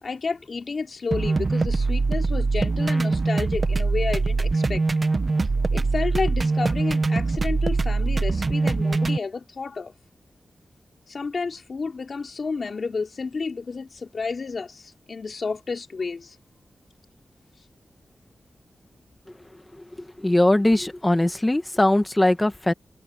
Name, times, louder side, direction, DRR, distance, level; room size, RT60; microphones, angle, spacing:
voice 1, 0.0-4.8 5.7-9.9 11.1-16.4, left 4 dB, 50° left, 3.1 m, -31 dB
sound 1, 1.1-9.2, right 3 dB, 40° right, 1.2 m, -23 dB
voice 2, 20.2-22.7, left 1 dB, 15° left, 1.5 m, -20 dB
wide cardioid pair, 140°, 0 cm